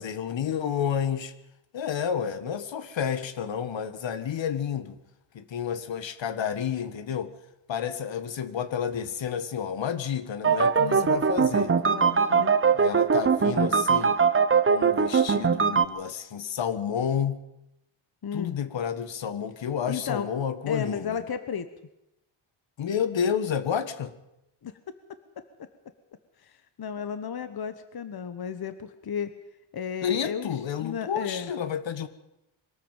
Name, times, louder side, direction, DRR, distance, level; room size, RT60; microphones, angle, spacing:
voice 1, 0.0-1.3 1.7-5.0 5.3-7.3 7.7-11.8 12.7-14.2 14.7-17.4 18.3-21.2 22.8-24.1 30.0-32.1, left 8 dB, 65° left, 12 dB, 1.6 m, -30 dB
sound 1, 10.4-15.8, right 5 dB, 25° right, 1.1 m, -22 dB
voice 2, 10.8-11.2 11.9-12.5 18.2-18.6 19.9-20.3 20.7-21.7 24.6-24.7 26.4-29.3 29.7-31.5, left 7 dB, 50° left, 11 dB, 1.3 m, -34 dB
22.0 x 13.0 x 9.0 m, 0.87 s
cardioid pair, 80°, 49 cm